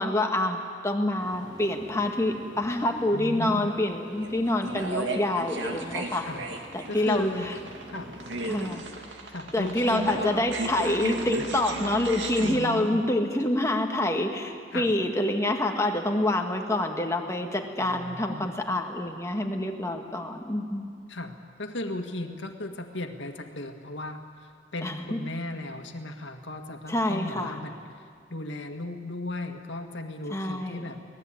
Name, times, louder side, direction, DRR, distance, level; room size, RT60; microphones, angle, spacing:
voice 1, 0.0-6.3 6.7-7.5 8.5-8.8 9.5-20.9 24.8-25.2 26.9-27.6 30.3-30.8, left 1 dB, 15° left, 3 dB, 1.9 m, -27 dB
sound 1, 1.2-8.7, equal, 25° right, 2.5 m, -47 dB
voice 2, 3.1-3.7 6.2-6.4 6.9-7.5 7.9-8.1 9.3-10.4 12.4-13.0 14.7-14.9 17.8-18.5 21.1-31.0, left 2 dB, 80° left, 4 dB, 1.8 m, -36 dB
sound 2, 4.2-12.6, right 2 dB, 80° right, 2.3 m, -34 dB
24.5 x 18.5 x 8.9 m, 2.2 s
head